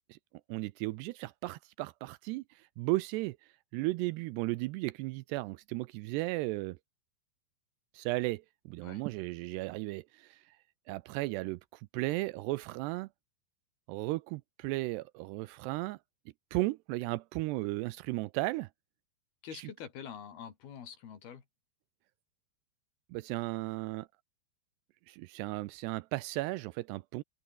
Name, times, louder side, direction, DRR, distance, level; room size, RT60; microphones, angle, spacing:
voice 1, 0.5-3.4 3.7-6.8 7.9-10.4 10.9-11.6 11.9-13.1 13.9-16.0 16.5-18.7 19.5-19.7 23.1-24.1 25.1-27.2, right 20 dB, 80° right, 2.6 m, -35 dB
voice 2, 19.4-21.4, left 8 dB, 60° left, 4.7 m, -45 dB
open air
omnidirectional pair, 5.0 m